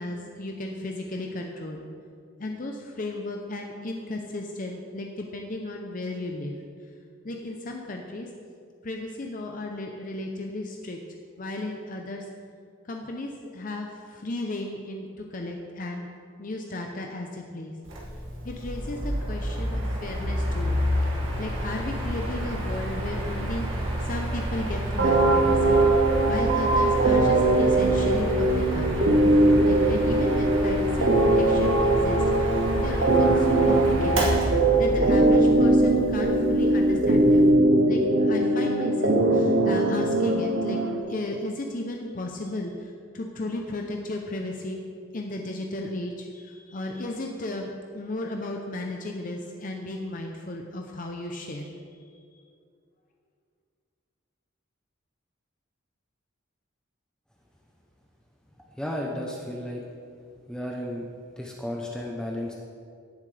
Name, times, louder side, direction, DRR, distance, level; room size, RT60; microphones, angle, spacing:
voice 1, 0.0-1.9 2.4-6.5 7.2-8.3 8.8-11.0 11.4-12.2 12.9-16.1 16.4-17.7 18.4-20.8 21.4-25.8 26.3-29.1 29.6-37.6 37.9-40.8 41.0-44.8 45.1-51.8, left 2 dB, 40° left, 2 dB, 0.7 m, -35 dB
Mechanical fan, 17.9-37.5, equal, 75° right, 2.1 m, -30 dB
sound 1, 25.0-41.0, right 2 dB, 60° right, 1.0 m, -21 dB
voice 2, 58.8-59.8 60.5-61.0 61.4-62.5, left 1 dB, 5° left, -2 dB, 0.8 m, -33 dB
17.0 x 7.4 x 3.4 m, 2.3 s
head